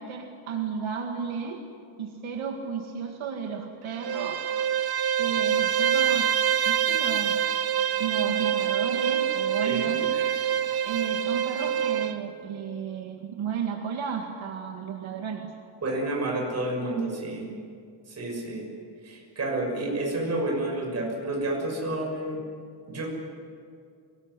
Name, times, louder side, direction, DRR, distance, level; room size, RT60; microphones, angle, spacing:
voice 1, 0.0-1.6 2.0-4.5 5.2-6.3 6.7-7.4 8.0-10.4 10.9-15.5, right 6 dB, 70° right, 2 dB, 2.1 m, -33 dB
Bowed string instrument, 3.9-12.2, right 9 dB, 50° right, 1.1 m, -26 dB
voice 2, 15.8-17.5 18.1-18.6 19.0-22.4 22.9-23.1, right 2 dB, 30° right, 0 dB, 6.4 m, -30 dB
23.5 x 19.5 x 9.9 m, 2.3 s
wide cardioid pair, 180°, 49 cm